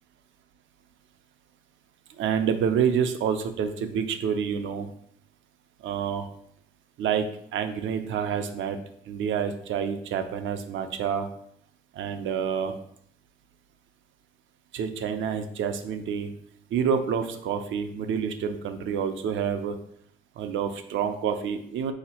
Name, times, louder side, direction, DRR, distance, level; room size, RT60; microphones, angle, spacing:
voice 1, 2.2-4.9 5.8-6.3 7.0-7.3 7.5-8.8 9.1-11.3 11.9-12.8 14.7-16.3 16.7-19.8 20.4-21.9, right 7 dB, 75° right, 7 dB, 0.6 m, -28 dB
4.1 x 2.9 x 4.3 m, 0.68 s
cardioid pair, 90°, 20 cm